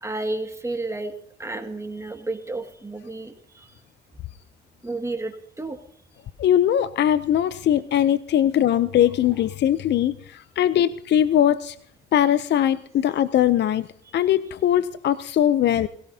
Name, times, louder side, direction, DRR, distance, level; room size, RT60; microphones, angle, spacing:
voice 1, 0.0-1.1 1.4-3.7 4.8-5.8 14.1-14.2, right 2 dB, 15° right, 4 dB, 2.0 m, -31 dB
voice 2, 6.4-11.8 12.1-13.9 14.1-15.9, left 10 dB, 60° left, 15 dB, 0.6 m, -20 dB
21.5 x 17.0 x 2.8 m, 0.67 s
cardioid pair, 90°, 20 cm